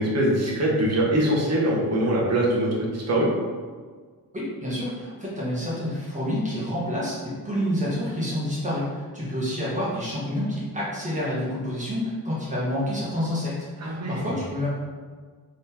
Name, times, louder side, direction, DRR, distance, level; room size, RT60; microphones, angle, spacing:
voice 1, 0.0-3.3 13.8-14.2, right 1 dB, 45° right, -4 dB, 1.1 m, -23 dB
voice 2, 4.3-14.7, equal, 20° right, -7 dB, 1.1 m, -28 dB
3.6 x 3.1 x 4.3 m, 1.5 s
wide cardioid pair, 165°, 35 cm